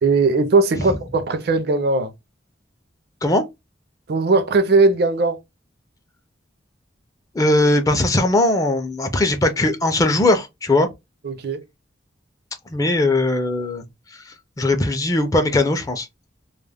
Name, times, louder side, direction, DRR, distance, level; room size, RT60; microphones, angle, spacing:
voice 1, 0.0-2.1 4.1-5.4 11.2-11.6, right 3 dB, 55° right, 0.5 m, -18 dB
voice 2, 7.3-10.9 12.7-13.8 14.3-16.1, left 2 dB, 20° left, 0.4 m, -19 dB
2.3 x 2.0 x 3.2 m
head